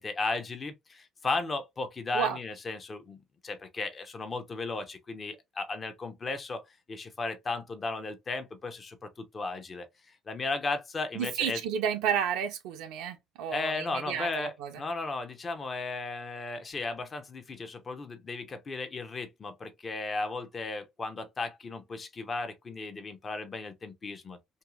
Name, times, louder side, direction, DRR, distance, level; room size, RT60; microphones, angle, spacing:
voice 1, 0.0-6.6 6.9-11.6 13.5-24.4, left 3 dB, 35° left, 0.8 m, -35 dB
voice 2, 11.2-14.7, right 8 dB, 70° right, 0.4 m, -31 dB
3.0 x 2.7 x 2.3 m
hypercardioid pair, 55°, 0 cm